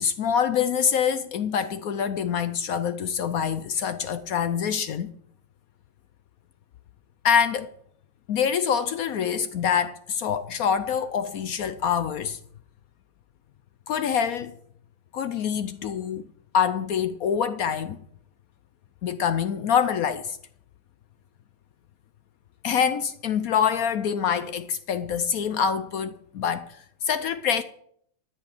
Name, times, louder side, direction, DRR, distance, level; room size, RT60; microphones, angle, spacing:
voice 1, 0.0-5.1 7.2-7.7 8.3-12.4 13.9-14.5 15.1-16.3 16.5-18.0 19.0-20.4 22.6-27.6, left 7 dB, 70° left, 0.8 m, -25 dB
13.0 x 5.5 x 9.0 m
omnidirectional pair, 2.1 m